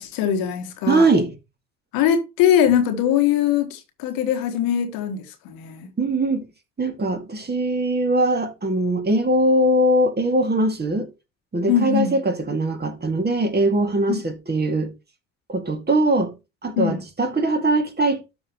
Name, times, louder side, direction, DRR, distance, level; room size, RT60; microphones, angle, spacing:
voice 1, 0.0-1.1 1.9-5.9 11.7-12.2 14.1-14.2 16.8-17.0, left 9 dB, 65° left, 1.5 m, -21 dB
voice 2, 0.9-1.3 6.0-6.5 6.8-11.1 11.5-14.9 15.5-16.3 16.6-18.2, right 1 dB, 25° right, 2.3 m, -21 dB
12.5 x 4.7 x 3.0 m
hypercardioid pair, 65°, 38 cm